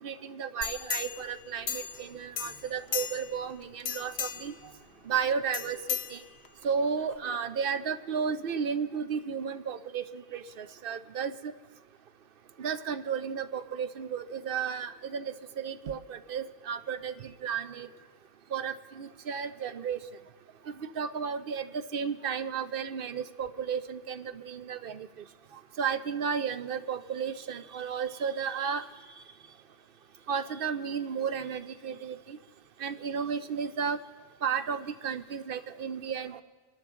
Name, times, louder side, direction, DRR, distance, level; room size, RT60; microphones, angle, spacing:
voice 1, 0.0-4.5 5.1-6.2 6.6-11.5 12.6-17.9 18.5-20.0 20.8-25.1 25.8-28.8 30.3-32.4 32.8-34.0 34.4-36.4, right 6 dB, 65° right, 11 dB, 0.8 m, -33 dB
sound 1, 0.6-2.1 2.4-3.4 3.8-4.6 5.5-6.6 7.1-7.2, left 8 dB, 80° left, 1.1 m, -35 dB
26.0 x 12.0 x 3.7 m, 1.5 s
omnidirectional pair, 1.0 m